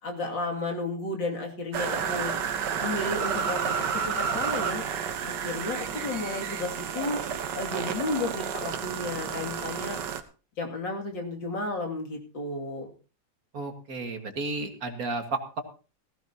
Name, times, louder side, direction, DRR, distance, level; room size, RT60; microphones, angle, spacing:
voice 1, 0.0-2.3 2.8-4.8 5.2-7.2 7.5-10.0 10.6-12.9, left 2 dB, 90° left, 1 dB, 3.2 m, -33 dB
sound 1, 1.7-10.2, right 7 dB, 75° right, 1.7 m, -31 dB
voice 2, 13.5-15.6, right 3 dB, 50° right, 5 dB, 2.1 m, -32 dB
17.0 x 15.5 x 2.9 m, 0.35 s
omnidirectional pair, 1.9 m